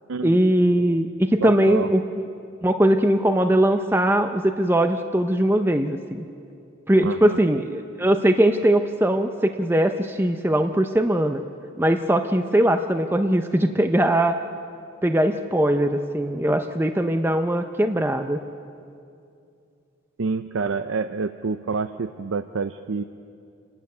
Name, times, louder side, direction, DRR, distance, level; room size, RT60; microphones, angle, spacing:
voice 1, 0.2-2.2 2.6-6.2 6.9-11.4 11.8-14.4 15.0-18.4, right 1 dB, 10° right, 7 dB, 0.6 m, -20 dB
voice 2, 1.4-1.9 7.0-7.4 20.2-23.0, right 4 dB, 85° right, 10 dB, 0.6 m, -28 dB
28.5 x 12.5 x 9.6 m, 2.5 s
head